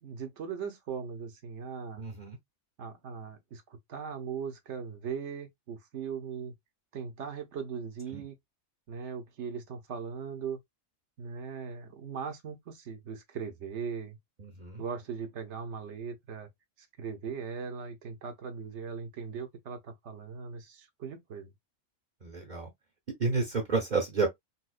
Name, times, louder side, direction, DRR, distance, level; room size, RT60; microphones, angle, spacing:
voice 1, 0.0-2.0 2.8-6.5 6.9-8.3 8.9-10.6 11.2-14.2 14.8-16.5 17.0-21.5, right 6 dB, 65° right, 0.9 m, -39 dB
voice 2, 2.0-2.4 8.1-8.2 14.4-14.8 22.2-22.7 23.2-24.3, right 4 dB, 45° right, 0.7 m, -30 dB
4.1 x 2.3 x 2.3 m
omnidirectional pair, 1.4 m